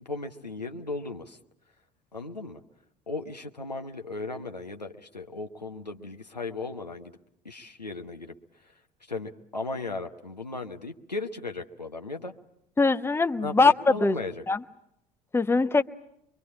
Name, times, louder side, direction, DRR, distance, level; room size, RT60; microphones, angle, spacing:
voice 1, 0.0-1.4 2.1-2.6 3.1-7.1 7.4-8.3 8.6-8.7 9.1-12.3 13.4-14.4, left 3 dB, 90° left, 4 dB, 1.0 m, -36 dB
voice 2, 12.8-13.7 14.0-14.1 14.5-14.6 15.3-15.8, left 3 dB, 10° left, 10 dB, 0.9 m, -21 dB
24.0 x 24.0 x 8.4 m, 0.76 s
figure-of-eight pair, 60°, 21 cm